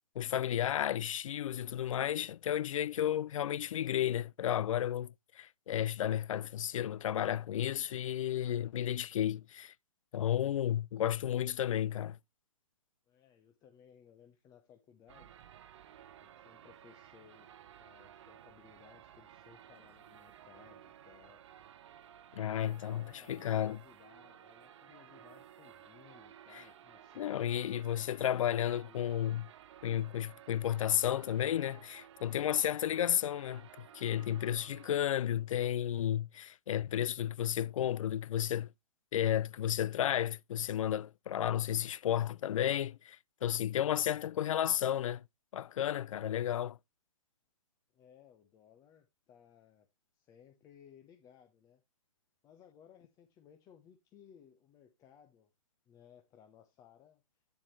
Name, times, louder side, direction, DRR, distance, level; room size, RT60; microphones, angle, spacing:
voice 1, 0.2-9.7 10.1-12.2 22.3-23.8 26.5-26.6 27.2-29.5 29.8-38.7 39.1-45.2 45.5-46.8, left 11 dB, 65° left, 0.4 m, -33 dB
voice 2, 13.1-15.4 16.2-17.5 17.8-21.4 22.5-29.2 47.9-49.9 50.1-51.8 52.4-55.5 55.9-57.2, left 8 dB, 20° left, 0.9 m, -61 dB
sound 1, 15.1-34.9, right 10 dB, 55° right, 0.9 m, -56 dB
9.3 x 7.2 x 3.1 m
hypercardioid pair, 145°, 18 cm